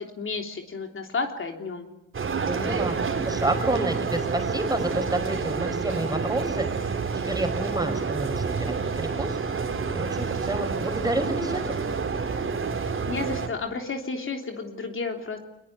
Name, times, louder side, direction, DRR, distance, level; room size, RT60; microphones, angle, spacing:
voice 1, 0.0-1.9 13.1-15.4, left 4 dB, 45° left, 4 dB, 3.4 m, -32 dB
sound 1, 2.1-13.5, right 5 dB, 45° right, 3.7 m, -28 dB
voice 2, 2.4-7.0 7.3-11.8, right 1 dB, 15° right, 7 dB, 4.8 m, -30 dB
23.5 x 21.0 x 9.5 m, 0.88 s
cardioid pair, 90°, 30 cm